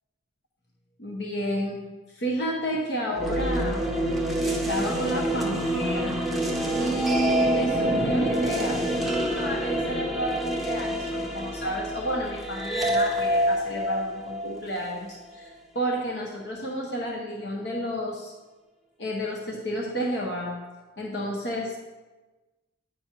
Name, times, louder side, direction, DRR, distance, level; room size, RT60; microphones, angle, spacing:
voice 1, 1.0-3.9 4.4-6.2 6.8-18.3 19.0-20.6 21.0-21.8, right 1 dB, 65° left, -2 dB, 0.8 m, -31 dB
sound 1, 3.1-15.3, right 1 dB, ahead, 0.6 m, -27 dB
9.4 x 4.8 x 2.9 m, 1.2 s
head